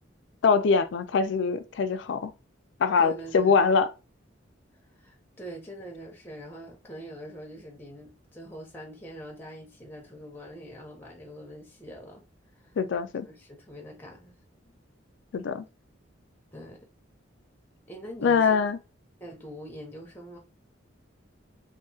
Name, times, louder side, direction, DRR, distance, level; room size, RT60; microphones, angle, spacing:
voice 1, 0.4-2.3 2.8-3.9 12.8-13.3 15.3-15.7 18.2-18.8, left 5 dB, 65° left, 0.3 m, -23 dB
voice 2, 3.0-3.6 4.8-12.2 12.5-12.8 13.3-14.4 16.5-16.9 17.9-18.7 19.2-20.4, right 1 dB, 10° left, 0.6 m, -44 dB
2.7 x 2.5 x 2.6 m
head